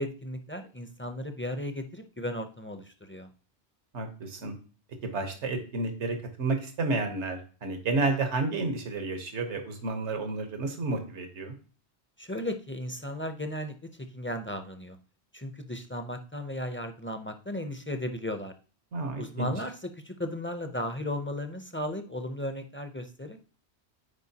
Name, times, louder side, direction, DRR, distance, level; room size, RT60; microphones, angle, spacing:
voice 1, 0.0-3.3 12.2-15.0 15.3-18.5 19.2-23.4, left 1 dB, 20° left, 7 dB, 0.3 m, -35 dB
voice 2, 3.9-4.6 5.0-11.5 18.9-19.5, right 3 dB, 85° right, 6 dB, 1.4 m, -31 dB
9.8 x 4.5 x 2.8 m, 0.38 s
omnidirectional pair, 1.1 m